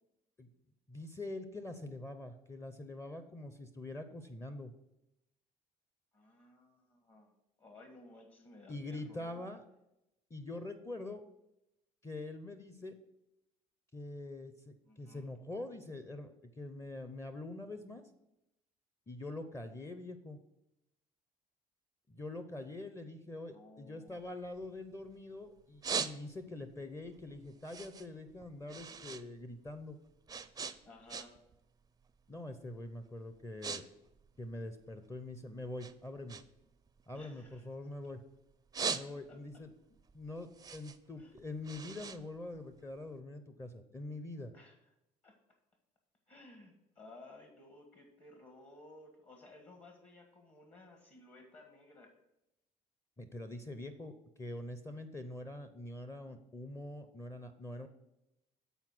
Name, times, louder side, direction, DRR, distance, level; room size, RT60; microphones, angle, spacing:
voice 1, 0.9-4.7 8.7-9.6 10.3-11.2 12.0-13.0 13.9-18.0 19.1-20.4 22.1-30.0 32.3-33.9 34.4-36.4 37.1-38.2 38.9-39.7 40.1-44.5 53.2-57.9, left 2 dB, 15° left, 9 dB, 0.6 m, -44 dB
voice 2, 6.1-7.3 7.6-9.5 14.9-15.3 23.5-24.2 30.8-31.3 37.1-37.7 39.3-39.4 41.2-41.3 44.5-44.7 45.2-45.3 46.3-52.1, left 2 dB, 40° left, 3 dB, 1.5 m, -57 dB
sound 1, 24.1-25.2 25.6-26.6 27.0-29.3 29.5-31.6 31.9-32.2 32.8-33.0 33.3-33.8 34.1-35.3 35.8-38.1 38.5-39.5 40.0-43.1, right 5 dB, 25° right, 0.4 m, -41 dB
8.0 x 4.3 x 6.1 m, 0.88 s
cardioid pair, 90°, 16 cm